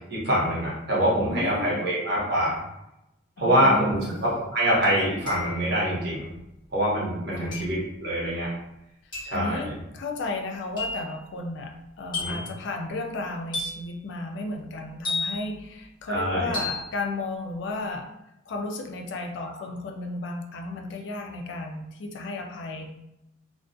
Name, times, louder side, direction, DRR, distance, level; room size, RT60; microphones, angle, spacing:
voice 1, 0.1-2.6 3.4-6.2 6.7-8.5 9.2-9.6 12.2-12.4 16.1-16.6, equal, 55° right, -5 dB, 1.0 m, -24 dB
voice 2, 1.1-1.8 3.4-4.2 7.3-7.6 9.0-18.1 18.5-22.9, left 2 dB, 60° left, 4 dB, 0.3 m, -34 dB
sound 1, 4.1-4.2 5.3-5.8 7.5-7.8 9.1-9.4 10.8-11.1 12.1-12.6 13.5-13.9 15.0-15.6 16.5-16.9, left 3 dB, 25° left, 1.0 m, -32 dB
2.2 x 2.2 x 2.5 m, 0.87 s
head